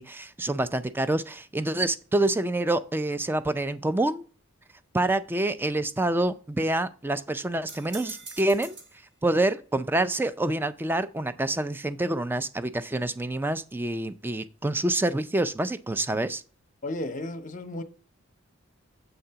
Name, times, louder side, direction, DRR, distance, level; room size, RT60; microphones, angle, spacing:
voice 1, 0.0-4.2 4.9-8.8 9.2-16.4, right 1 dB, 10° right, 0.4 m, -27 dB
sound 1, 7.7-9.0, right 4 dB, 55° right, 1.8 m, -42 dB
voice 2, 16.8-17.8, left 1 dB, 40° left, 0.7 m, -33 dB
7.9 x 3.8 x 5.6 m
head